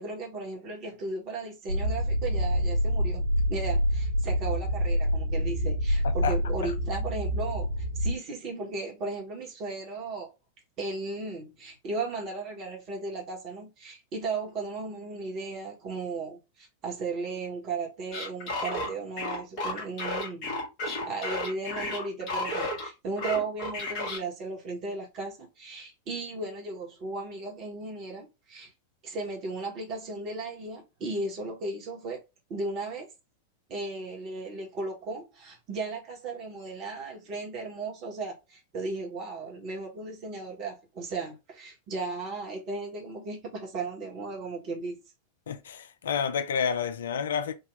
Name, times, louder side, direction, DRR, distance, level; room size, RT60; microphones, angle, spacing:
voice 1, 0.0-3.2 3.5-10.3 10.8-28.7 29.0-32.2 32.5-33.1 33.7-45.0, right 3 dB, 35° right, 1.7 m, -36 dB
sound 1, 1.7-8.1, equal, 90° left, 1.6 m, -27 dB
voice 2, 6.0-6.3 6.6-6.7 45.5-47.5, left 7 dB, 65° left, 0.4 m, -30 dB
sound 2, 18.1-22.9 23.2-24.2, left 2 dB, 45° left, 1.7 m, -32 dB
3.8 x 2.8 x 3.3 m
figure-of-eight pair, 90°, 0 cm